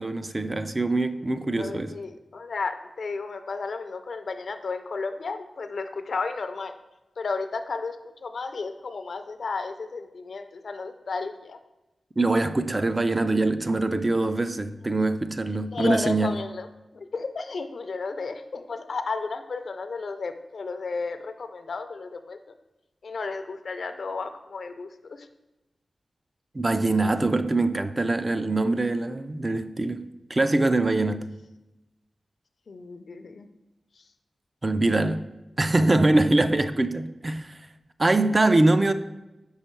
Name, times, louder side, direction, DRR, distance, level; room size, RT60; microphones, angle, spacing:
voice 1, 0.0-2.0 12.2-16.4 26.5-31.3 34.6-35.2 35.6-37.6 38.0-38.9, right 2 dB, 30° right, 0.3 m, -23 dB
voice 2, 1.4-6.7 7.2-11.6 15.7-16.7 16.9-22.4 23.0-25.3 31.1-31.2 32.7-33.5, left 4 dB, 70° left, 0.5 m, -33 dB
5.5 x 4.4 x 4.4 m
wide cardioid pair, 95°, 0 cm